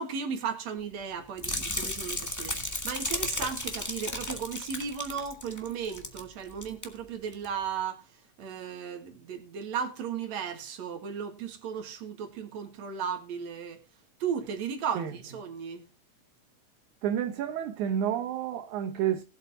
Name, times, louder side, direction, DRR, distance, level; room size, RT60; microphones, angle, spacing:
voice 1, 0.0-13.8 14.2-15.9, right 7 dB, 70° right, 2.9 m, -35 dB
sound 1, 1.4-6.2 6.5-6.9 7.3-7.5, left 1 dB, 15° left, 0.5 m, -34 dB
voice 2, 17.0-19.2, right 9 dB, 85° right, 2.4 m, -30 dB
19.5 x 8.0 x 2.8 m
omnidirectional pair, 3.3 m